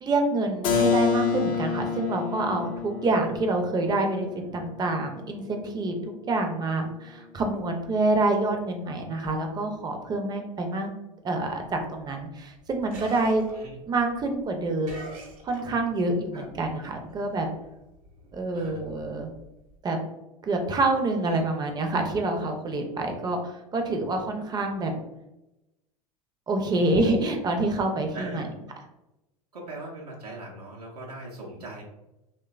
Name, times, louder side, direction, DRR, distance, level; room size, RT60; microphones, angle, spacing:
voice 1, 0.0-10.9 11.2-13.4 13.9-15.1 15.4-17.5 18.3-19.3 19.8-20.0 20.4-23.4 23.7-25.0 26.5-28.4, right 2 dB, 20° right, 4 dB, 0.5 m, -27 dB
Keyboard (musical), 0.6-6.2, left 5 dB, 60° left, 0.5 m, -29 dB
sound 1, 11.5-16.1 16.4-19.8, right 2 dB, 60° right, 1.0 m, -45 dB
voice 2, 28.1-28.5 29.5-31.8, right 2 dB, 85° right, -3 dB, 0.6 m, -40 dB
3.1 x 2.2 x 2.3 m, 0.94 s
figure-of-eight pair, 80°, 20 cm